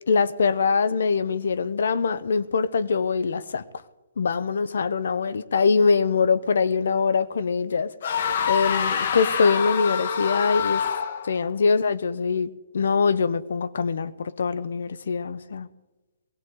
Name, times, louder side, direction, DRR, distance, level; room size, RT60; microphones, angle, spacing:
voice 1, 0.1-3.6 4.2-7.9 8.5-10.8 11.2-15.7, left 5 dB, 65° left, 0.7 m, -23 dB
sound 1, 8.0-11.4, left 7 dB, 45° left, 1.1 m, -26 dB
20.0 x 17.0 x 3.8 m
hypercardioid pair, 170°, 0 cm